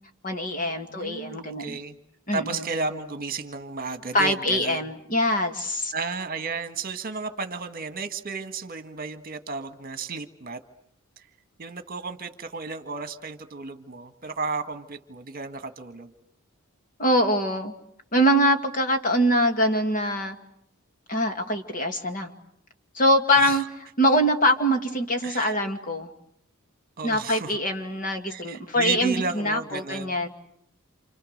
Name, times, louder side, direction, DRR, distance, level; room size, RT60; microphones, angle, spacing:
voice 1, 0.2-1.8 2.3-2.6 4.1-5.9 17.0-17.7 18.1-20.4 21.1-22.3 22.9-23.6 24.0-26.1 27.0-30.3, equal, 40° left, 6 dB, 2.2 m, -23 dB
voice 2, 0.9-2.0 2.3-4.8 5.9-10.6 11.6-16.1 23.3-23.6 25.2-25.5 27.0-27.6 28.2-30.2, right 4 dB, 40° right, 9 dB, 1.6 m, -33 dB
29.0 x 28.5 x 6.6 m, 0.73 s
head